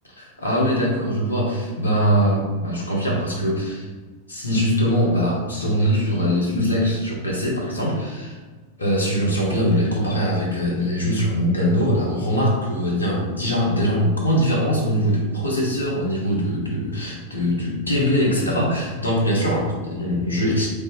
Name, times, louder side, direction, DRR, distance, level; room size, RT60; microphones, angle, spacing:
voice 1, 0.2-3.9 4.3-8.4 8.8-20.7, equal, 80° left, -2 dB, 0.8 m, -22 dB
3.2 x 2.7 x 3.1 m, 1.3 s
figure-of-eight pair, 90°, 0 cm